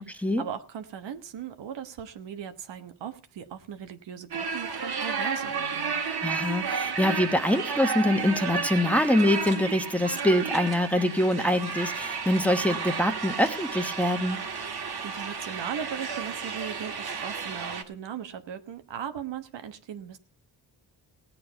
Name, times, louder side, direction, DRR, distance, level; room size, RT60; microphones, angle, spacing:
voice 1, 0.0-6.0 15.0-20.2, right 8 dB, 85° right, 8 dB, 1.3 m, -38 dB
sound 1, 4.3-17.8, right 5 dB, 60° right, 1.9 m, -32 dB
voice 2, 6.2-14.4, left 1 dB, 5° left, 6 dB, 1.2 m, -24 dB
17.0 x 8.7 x 4.5 m, 0.36 s
cardioid pair, 90°, 42 cm